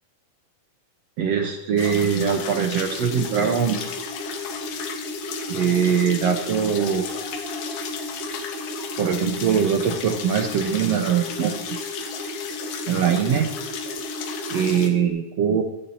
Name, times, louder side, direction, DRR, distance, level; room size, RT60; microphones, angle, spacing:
voice 1, 1.2-3.9 5.5-7.2 9.0-11.7 12.9-13.5 14.5-15.6, right 7 dB, 75° right, 3 dB, 1.5 m, -22 dB
sound 1, 1.8-14.9, left 7 dB, 90° left, 3.3 m, -35 dB
sound 2, 2.9-15.1, left 1 dB, 25° right, 1.1 m, -35 dB
sound 3, 4.6-4.7 5.2-8.4, left 3 dB, 40° left, 5.8 m, -45 dB
16.0 x 15.0 x 2.8 m, 0.96 s
omnidirectional pair, 4.3 m